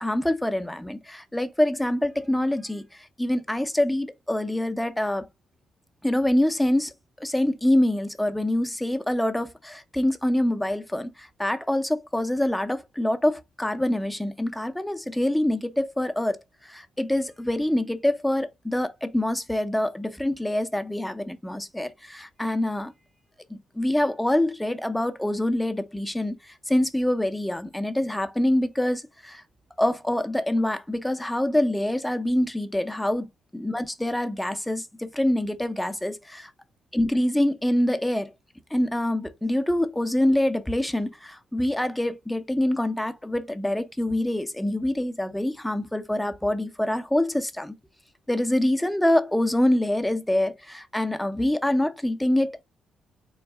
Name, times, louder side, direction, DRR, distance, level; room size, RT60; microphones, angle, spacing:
voice 1, 0.0-5.3 6.0-6.9 7.2-16.4 16.6-22.9 23.5-29.4 29.8-36.5 36.9-38.3 38.7-47.8 48.3-52.6, left 1 dB, 5° left, 0.7 m, -25 dB
3.9 x 2.6 x 3.4 m
cardioid pair, 90°, 0 cm